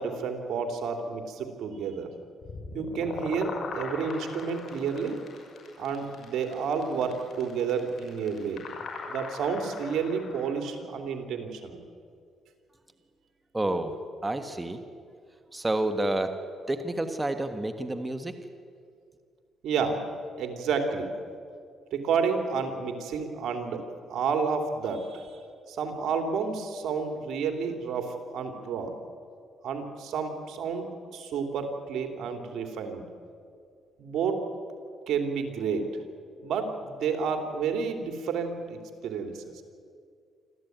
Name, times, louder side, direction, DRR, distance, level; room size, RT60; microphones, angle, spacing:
voice 1, 0.0-2.1 2.7-5.2 5.8-8.6 9.1-11.8 19.6-20.0 20.4-21.1 21.9-25.4 25.7-28.9 29.6-33.1 34.0-34.4 35.1-36.0 36.4-39.6, right 5 dB, 75° right, 5 dB, 3.0 m, -30 dB
sound 1, 2.4-10.5, left 4 dB, 60° left, 6.3 m, -40 dB
voice 2, 13.5-14.0 14.2-14.8 15.5-16.4 16.7-18.3, right 1 dB, 15° right, 7 dB, 1.5 m, -29 dB
26.0 x 14.0 x 9.3 m, 2.2 s
cardioid pair, 90°, 0 cm